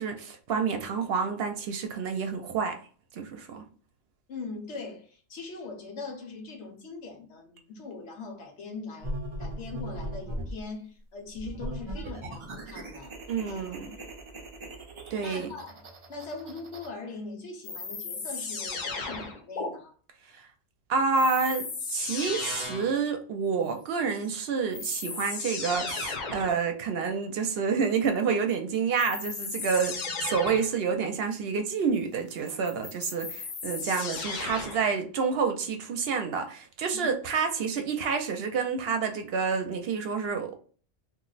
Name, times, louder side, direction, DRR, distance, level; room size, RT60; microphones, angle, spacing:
voice 1, 0.0-2.8 3.1-3.6 13.3-14.0 15.1-15.5 20.3-20.5 20.9-40.6, right 5 dB, 65° right, 0.7 m, -28 dB
voice 2, 4.3-13.2 13.4-13.8 15.2-15.8 16.1-19.9 36.9-37.2, left 3 dB, 85° left, 1.1 m, -41 dB
sound 1, 9.0-10.6 11.3-16.9, right 1 dB, 50° right, 0.4 m, -39 dB
sound 2, 17.6-19.7 21.1-23.0 24.2-24.3 24.7-26.6 29.0-30.8 32.5-34.9, left 4 dB, 50° left, 0.6 m, -35 dB
2.5 x 2.0 x 3.8 m
omnidirectional pair, 1.2 m